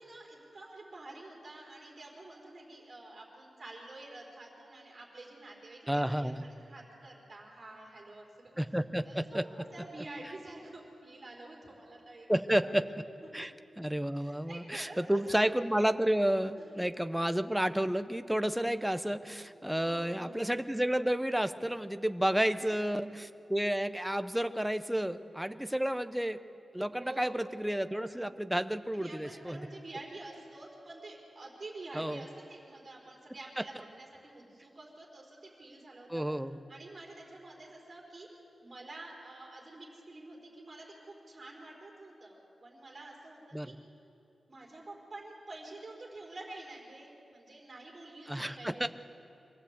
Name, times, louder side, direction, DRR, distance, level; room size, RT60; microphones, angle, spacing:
voice 1, 0.0-12.6 13.4-13.5 14.1-15.3 16.5-16.8 19.4-19.5 19.8-20.4 22.4-23.0 26.9-27.5 28.9-36.1 36.7-38.3 38.6-43.7 44.5-48.9, right 2 dB, 30° right, -3 dB, 4.4 m, -48 dB
voice 2, 5.9-6.4 8.6-9.4 12.3-12.9 13.3-13.5 13.8-26.4 26.7-29.6 31.9-32.2 36.1-36.6 43.5-43.7 48.3-48.9, right 1 dB, 5° right, 10 dB, 0.6 m, -31 dB
24.5 x 16.0 x 8.2 m, 2.7 s
wide cardioid pair, 180°, 0 cm